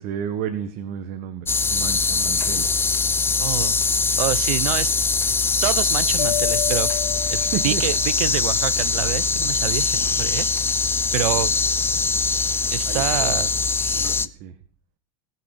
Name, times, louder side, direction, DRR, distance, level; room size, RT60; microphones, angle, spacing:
voice 1, 0.0-2.9 7.2-7.8 12.8-13.4 14.0-14.5, right 9 dB, 55° right, 9 dB, 1.7 m, -32 dB
sound 1, 1.5-14.3, left 4 dB, 10° left, 0.7 m, -22 dB
voice 2, 3.4-3.8 4.2-4.9 5.6-6.9 7.3-10.5 11.1-11.5 12.7-13.5, right 15 dB, 80° right, 21 dB, 0.9 m, -27 dB
Mallet percussion, 6.2-8.2, left 27 dB, 65° left, 0.7 m, -30 dB
20.0 x 6.9 x 8.3 m, 0.42 s
supercardioid pair, 120°, 18 cm